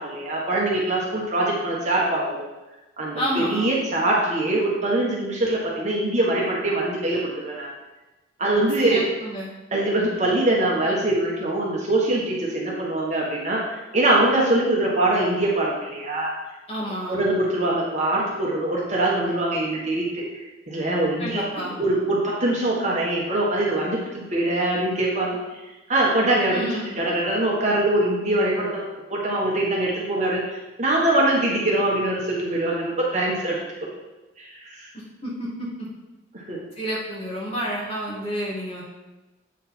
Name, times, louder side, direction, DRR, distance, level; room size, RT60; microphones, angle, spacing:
voice 1, 0.0-2.4 3.0-7.7 8.4-9.0 9.7-13.6 13.9-16.3 17.1-25.4 25.9-30.4 30.8-33.6 34.4-34.9 36.3-36.6, right 1 dB, 35° right, -3 dB, 1.3 m, -23 dB
voice 2, 3.2-3.7 8.8-9.5 16.7-17.2 21.2-21.8 26.5-26.9 34.9-35.5 36.8-38.8, equal, 30° left, -6 dB, 2.4 m, -30 dB
8.3 x 5.0 x 4.4 m, 1.1 s
head